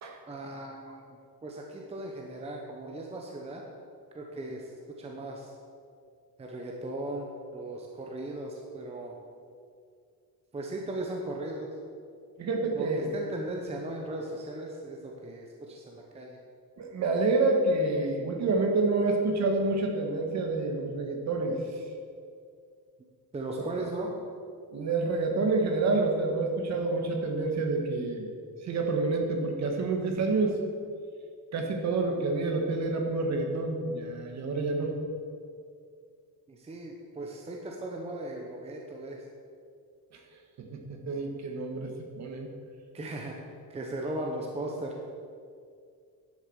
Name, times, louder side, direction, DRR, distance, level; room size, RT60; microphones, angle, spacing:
voice 1, 0.3-3.6 4.1-4.7 5.0-5.5 6.4-9.2 10.5-11.7 12.7-16.4 23.3-24.1 26.9-27.1 36.5-39.2 42.9-43.4 43.7-45.1, right 1 dB, 15° right, 0 dB, 0.9 m, -37 dB
voice 2, 12.4-13.1 16.8-21.6 23.6-23.7 24.7-28.3 28.6-30.6 31.5-34.9 40.6-42.5, right 3 dB, 45° right, 3 dB, 1.7 m, -28 dB
11.0 x 7.9 x 7.1 m, 2.3 s
cardioid pair, 175°, 38 cm